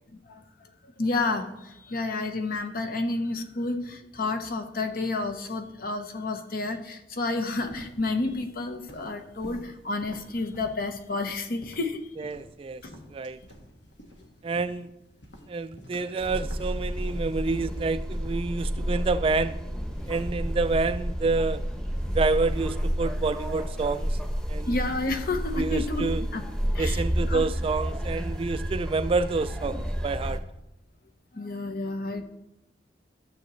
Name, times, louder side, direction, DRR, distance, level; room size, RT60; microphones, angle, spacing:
voice 1, 0.1-0.4 1.0-12.2 12.8-12.9 24.7-26.0 26.3-26.5 26.7-27.5 31.3-32.2, left 2 dB, 55° left, 6 dB, 1.0 m, -30 dB
sound 1, 7.5-23.8, equal, 80° left, 1.5 m, -50 dB
voice 2, 12.2-12.8 13.1-13.4 14.4-14.9 15.5-19.6 20.1-21.6 22.1-24.2 24.5-24.8 25.5-26.2 26.8-30.4, right 3 dB, 30° right, 13 dB, 0.3 m, -28 dB
sound 2, 16.2-30.4, equal, 5° left, 1.0 m, -30 dB
12.5 x 7.4 x 3.1 m, 0.92 s
head